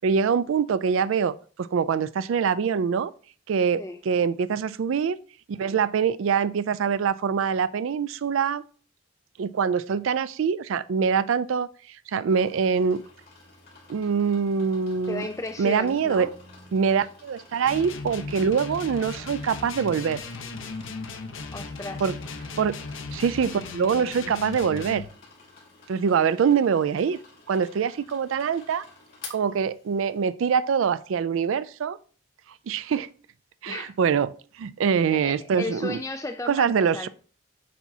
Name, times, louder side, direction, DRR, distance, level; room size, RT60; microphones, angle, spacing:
voice 1, 0.0-3.1 3.5-5.2 5.5-8.6 9.4-13.0 13.9-15.3 15.6-16.3 16.7-20.2 22.0-22.1 22.6-22.8 23.1-25.0 25.9-27.2 27.5-28.9 29.3-32.0 32.7-33.1 33.6-34.3 34.6-36.0 36.5-37.1, right 6 dB, 80° right, 0.4 m, -24 dB
sound 1, 12.3-30.3, left 3 dB, 50° left, 2.7 m, -50 dB
voice 2, 15.1-16.3 21.5-22.1 33.7-33.9 35.1-37.1, left 2 dB, 15° left, 0.4 m, -34 dB
sound 2, 17.6-25.1, left 3 dB, 75° left, 0.9 m, -37 dB
8.4 x 5.9 x 2.8 m
head